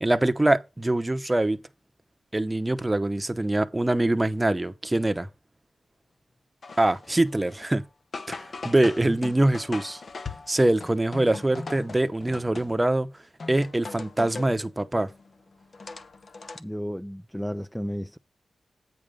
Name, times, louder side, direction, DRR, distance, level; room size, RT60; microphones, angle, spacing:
voice 1, 0.0-1.6 2.3-5.3 6.8-7.8 8.3-10.0 10.5-13.1 13.5-15.1, right 1 dB, 20° right, 0.9 m, -24 dB
sound 1, 6.6-7.8 8.1-13.0 13.4-14.6 15.1-16.6, left 4 dB, 55° left, 1.0 m, -40 dB
voice 2, 16.6-18.2, equal, 5° left, 0.5 m, -33 dB
8.7 x 5.0 x 5.4 m
cardioid pair, 55°, 0 cm